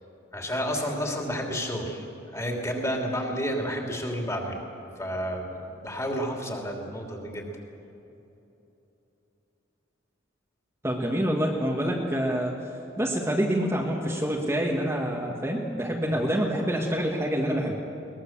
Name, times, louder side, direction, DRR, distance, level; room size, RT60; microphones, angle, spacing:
voice 1, 0.3-4.6 5.0-7.5 16.1-16.2, equal, 15° left, 1 dB, 3.2 m, -31 dB
voice 2, 10.8-12.5 13.0-17.8, equal, 15° right, -2 dB, 1.8 m, -26 dB
22.5 x 20.5 x 7.5 m, 3.0 s
head